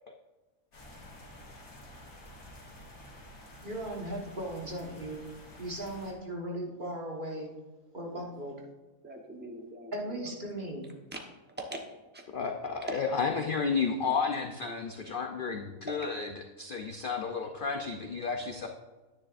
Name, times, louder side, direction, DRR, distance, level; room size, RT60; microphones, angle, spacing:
sound 1, 0.7-6.1, left 1 dB, 75° left, 2.3 m, -50 dB
voice 1, 3.6-5.3 5.6-7.5 7.9-8.5 9.9-10.8, right 1 dB, 35° right, -1 dB, 1.5 m, -37 dB
voice 2, 9.0-10.3 11.1-11.2 11.6-12.3 12.8-13.0 15.9-16.0, right 1 dB, 10° right, 2 dB, 0.9 m, -41 dB
voice 3, 12.3-16.3 16.6-18.7, left 5 dB, 55° left, 4 dB, 0.6 m, -32 dB
9.9 x 9.9 x 2.5 m, 1.2 s
omnidirectional pair, 1.5 m